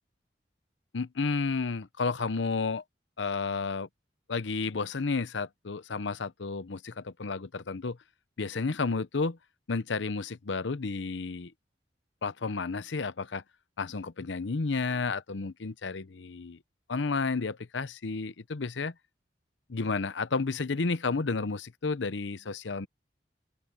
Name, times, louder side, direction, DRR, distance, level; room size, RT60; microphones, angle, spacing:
voice 1, 0.9-2.8 3.2-3.9 4.3-8.0 8.4-9.4 9.7-11.5 12.2-13.4 13.8-16.6 16.9-18.9 19.7-22.9, left 4 dB, 85° left, 0.8 m, -31 dB
open air
head